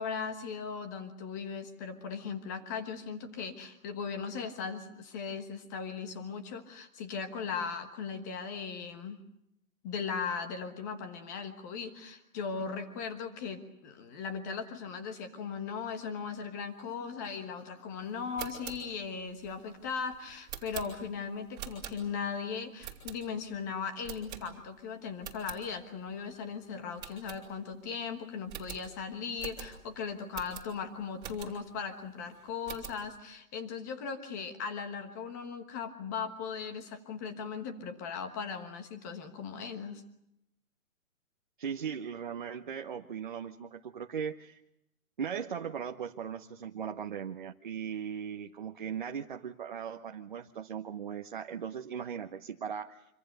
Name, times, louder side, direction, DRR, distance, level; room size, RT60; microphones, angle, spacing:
voice 1, 0.0-9.2 9.8-40.0, left 6 dB, 15° left, 8 dB, 1.3 m, -38 dB
sound 1, 11.5-13.4 13.6-14.0 14.3-14.4 15.1-15.5 16.4-18.8 19.1-19.7, left 1 dB, 30° left, 7.8 m, -63 dB
sound 2, 18.2-22.3 22.8-23.6 24.0-24.8 25.1-25.6 26.1-26.2 26.4-26.5 27.0-27.9 28.1-28.2 28.5-31.8 32.2-33.1, right 9 dB, 10° right, 3.3 m, -45 dB
voice 2, 41.6-44.6 45.2-53.0, right 7 dB, 35° right, 4 dB, 1.0 m, -38 dB
26.5 x 26.0 x 6.7 m, 0.79 s
hypercardioid pair, 175°, 42 cm